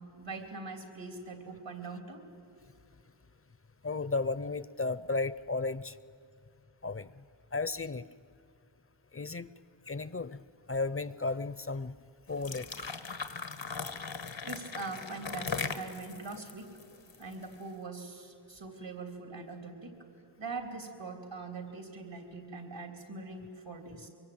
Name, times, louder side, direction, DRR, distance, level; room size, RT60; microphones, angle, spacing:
voice 1, 0.0-2.3 14.4-16.7 17.2-19.9 20.4-24.1, right 3 dB, 85° right, 4 dB, 3.5 m, -42 dB
voice 2, 3.8-6.0 6.8-7.2 7.5-8.0 9.1-9.5 9.9-10.4 10.7-11.9 12.3-12.9, left 3 dB, 30° left, 16 dB, 0.5 m, -34 dB
sound 1, 12.3-17.5, left 5 dB, 90° left, 1.4 m, -39 dB
24.5 x 24.0 x 8.8 m, 2.3 s
wide cardioid pair, 70°, 43 cm